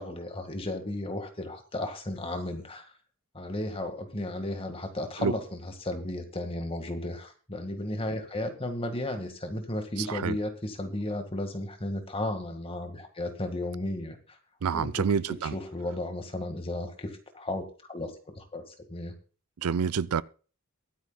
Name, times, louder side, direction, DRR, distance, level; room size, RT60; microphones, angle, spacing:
voice 1, 0.0-2.9 3.3-14.2 14.7-15.1 15.4-19.1, left 1 dB, 25° left, 1.8 m, -34 dB
voice 2, 10.0-10.4 14.6-15.5 19.6-20.2, right 6 dB, 80° right, 0.5 m, -27 dB
23.0 x 9.3 x 2.3 m
head